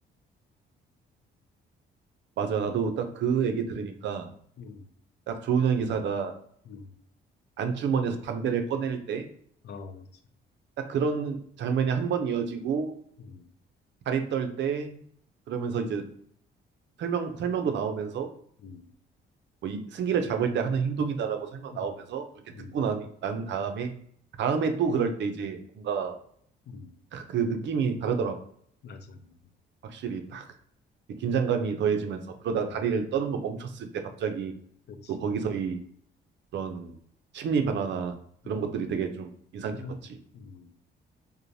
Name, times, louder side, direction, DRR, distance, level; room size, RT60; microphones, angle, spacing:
voice 1, 2.4-4.3 5.3-6.4 7.6-9.3 10.8-12.9 14.1-15.0 15.5-16.1 17.0-18.3 19.6-22.2 22.7-23.9 24.4-26.2 27.1-28.4 29.8-30.5 31.2-34.5 35.1-35.8 36.5-36.9 37.3-38.2 38.5-40.2, right 6 dB, 65° right, 6 dB, 0.5 m, -29 dB
voice 2, 9.6-10.1 13.2-13.5 15.6-15.7 18.6-18.9 21.7-21.9 22.5-22.8 26.7-26.9 28.8-29.3 34.9-35.3 38.4-38.6 39.7-40.0 40.3-40.7, left 4 dB, 60° left, 8 dB, 0.4 m, -44 dB
3.1 x 2.1 x 2.6 m, 0.63 s
cardioid pair, 90°, 20 cm